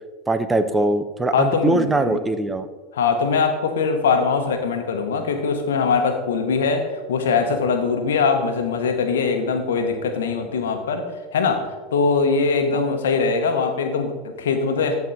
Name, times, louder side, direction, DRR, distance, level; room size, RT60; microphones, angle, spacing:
voice 1, 0.3-2.7, right 2 dB, 15° right, 10 dB, 0.7 m, -21 dB
voice 2, 1.3-2.2 2.9-11.1 11.3-15.0, left 5 dB, 80° left, 6 dB, 1.1 m, -22 dB
13.0 x 4.7 x 4.1 m, 1.3 s
hypercardioid pair, 90°, 0 cm